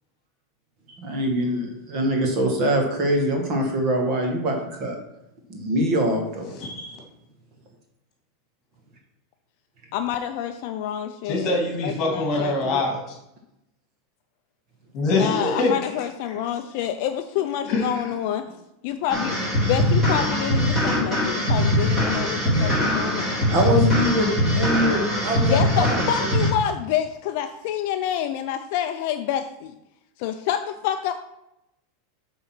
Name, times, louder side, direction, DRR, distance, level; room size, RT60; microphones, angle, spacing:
voice 1, 0.9-5.0 5.5-6.5 23.5-26.3, equal, 30° right, 2 dB, 1.6 m, -24 dB
voice 2, 6.5-7.0 11.2-13.2 14.9-15.9 16.3-16.4 17.6-18.1, left 2 dB, 30° left, 1 dB, 2.2 m, -25 dB
voice 3, 9.9-12.8 15.1-18.4 18.8-19.4 19.6-23.5 25.5-29.7 30.2-31.1, left 10 dB, 45° left, 7 dB, 0.4 m, -27 dB
sound 1, 19.1-26.5, equal, 10° right, 2.7 m, -22 dB
8.0 x 3.9 x 6.0 m, 0.87 s
supercardioid pair, 170°, 0 cm